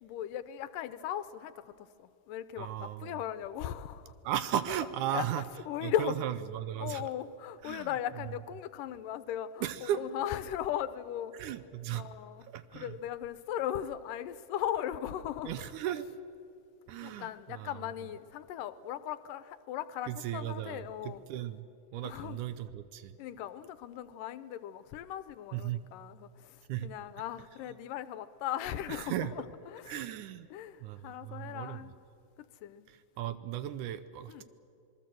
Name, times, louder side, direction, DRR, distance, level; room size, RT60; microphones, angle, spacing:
voice 1, 0.0-4.1 5.1-5.3 5.7-6.2 6.8-11.3 11.9-12.5 12.7-15.7 17.0-21.2 22.0-22.4 23.2-30.0 30.5-31.9 32.4-32.9 34.3-34.4, left 11 dB, 80° left, 2.3 m, -38 dB
voice 2, 2.6-3.2 4.2-5.4 5.8-7.0 7.6-7.9 9.6-10.0 11.3-12.1 12.5-12.9 15.4-16.1 16.9-17.8 20.1-21.7 21.9-23.2 25.5-25.8 26.7-26.9 28.9-29.3 29.9-30.5 30.8-31.8 32.9-34.4, right 11 dB, 75° right, 2.1 m, -36 dB
26.5 x 20.5 x 7.7 m
omnidirectional pair, 3.9 m